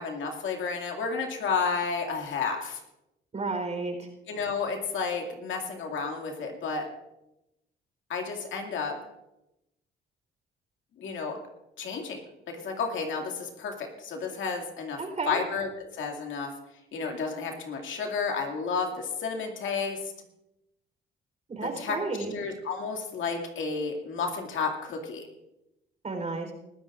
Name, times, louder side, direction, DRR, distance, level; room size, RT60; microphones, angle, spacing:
voice 1, 0.0-2.8 4.3-6.9 8.1-8.9 11.0-11.4 11.8-12.2 12.5-15.0 15.3-16.5 16.9-20.0 21.6-22.0 22.3-25.3, left 5 dB, 75° left, 2 dB, 2.3 m, -31 dB
voice 2, 3.3-4.1 15.0-15.4 21.5-22.3 26.0-26.5, right 3 dB, 35° right, 3 dB, 3.9 m, -32 dB
21.0 x 14.5 x 2.5 m, 0.90 s
cardioid pair, 90°, 20 cm